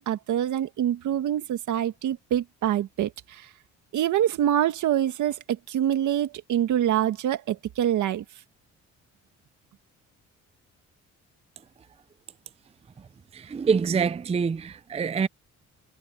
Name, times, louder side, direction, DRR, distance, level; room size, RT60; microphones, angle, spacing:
voice 1, 0.0-3.5 3.9-8.2, right 11 dB, 75° right, 2.0 m, -25 dB
voice 2, 13.3-15.3, right 6 dB, 20° right, 0.4 m, -25 dB
cardioid pair, 90°, 30 cm